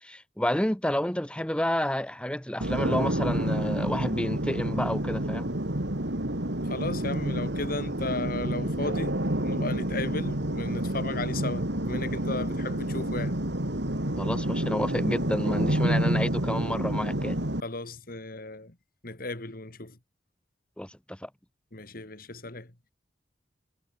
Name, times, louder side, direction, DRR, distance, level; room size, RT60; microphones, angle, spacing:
voice 1, 0.0-5.5 14.2-17.4 20.8-21.3, left 1 dB, 5° left, 1.0 m, -30 dB
sound 1, 2.6-17.6, right 1 dB, 65° right, 3.4 m, -29 dB
voice 2, 6.7-13.4 17.6-18.7 19.0-19.9 21.7-22.7, left 2 dB, 50° left, 2.7 m, -35 dB
head